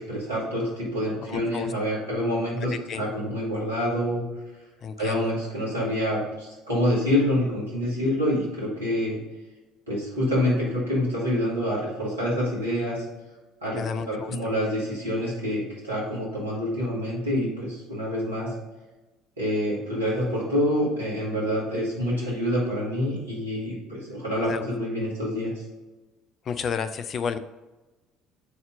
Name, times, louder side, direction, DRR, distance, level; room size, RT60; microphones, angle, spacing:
voice 1, 0.0-4.2 5.0-9.2 9.9-13.0 13.6-18.5 19.4-25.5, equal, 80° right, -7 dB, 2.1 m, -27 dB
voice 2, 1.2-1.7 2.9-3.0 4.8-5.2 13.7-14.4 24.4-24.7 26.5-27.4, left 6 dB, 40° left, 10 dB, 0.4 m, -31 dB
6.6 x 4.3 x 3.7 m, 1.1 s
figure-of-eight pair, 55°, 0 cm